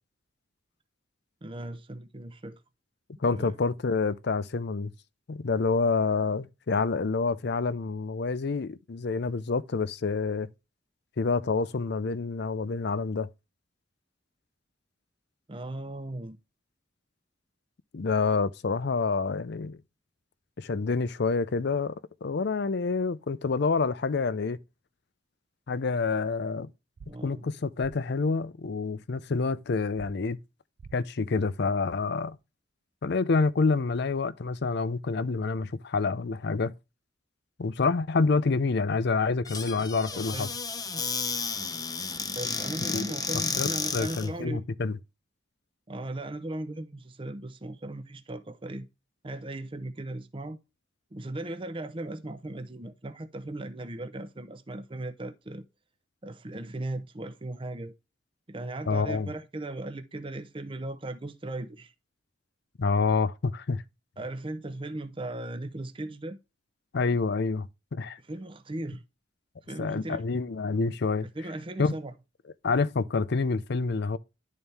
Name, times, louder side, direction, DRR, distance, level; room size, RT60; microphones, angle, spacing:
voice 1, 1.4-2.6 3.3-3.6 15.5-16.4 27.1-27.5 40.1-40.6 42.3-44.7 45.9-48.9 49.2-50.6 51.1-55.6 56.2-57.9 58.5-61.9 64.2-66.4 68.2-69.0 69.7-70.2 71.3-72.1, right 1 dB, 25° right, 0.6 m, -37 dB
voice 2, 3.2-4.9 5.3-10.5 11.2-13.3 17.9-19.8 20.6-24.6 25.7-26.7 27.2-30.4 30.9-32.4 33.0-36.7 37.6-40.5 42.9-43.0 43.6-45.0 58.9-59.3 62.8-63.8 66.9-68.2 69.8-71.3 71.8-71.9 72.6-74.2, left 4 dB, 60° left, 0.5 m, -27 dB
sound 1, 27.0-27.1 27.8-27.9 30.0-30.1 30.8-30.9, right 5 dB, 65° right, 0.5 m, -46 dB
Squeak / Cupboard open or close, 39.4-44.3, left 5 dB, 20° left, 0.6 m, -32 dB
10.5 x 4.2 x 3.4 m
head